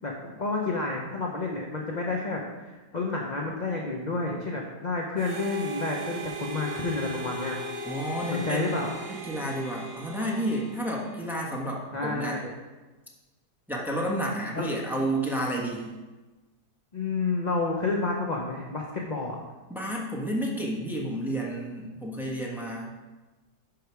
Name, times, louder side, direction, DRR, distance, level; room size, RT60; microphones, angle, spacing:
voice 1, 0.0-7.6 8.3-8.9 11.9-12.5 14.6-14.7 16.9-19.4, left 3 dB, 35° left, -1 dB, 0.8 m, -30 dB
Harmonica, 5.2-11.5, right 2 dB, 85° right, 1.9 m, -38 dB
voice 2, 7.8-12.4 13.7-15.9 19.7-22.9, right 1 dB, ahead, -3 dB, 1.3 m, -31 dB
11.0 x 5.0 x 4.8 m, 1.2 s
omnidirectional pair, 1.9 m